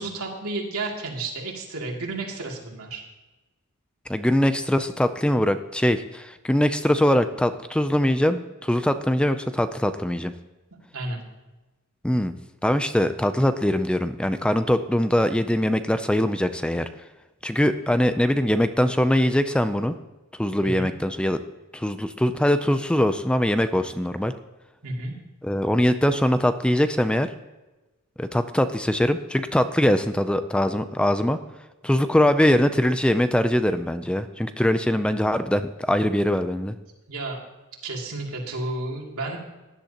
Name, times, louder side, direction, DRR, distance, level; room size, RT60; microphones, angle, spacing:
voice 1, 0.0-3.0 10.9-11.2 20.6-20.9 24.8-25.1 37.1-37.4 37.8-39.4, right 2 dB, 85° right, -1 dB, 2.6 m, -31 dB
voice 2, 4.1-10.3 12.0-12.3 12.6-16.9 17.4-20.0 20.4-21.4 21.7-24.3 25.4-27.3 28.2-31.4 31.8-36.7, left 1 dB, 5° left, 10 dB, 0.4 m, -22 dB
16.5 x 10.5 x 2.9 m, 1.1 s
head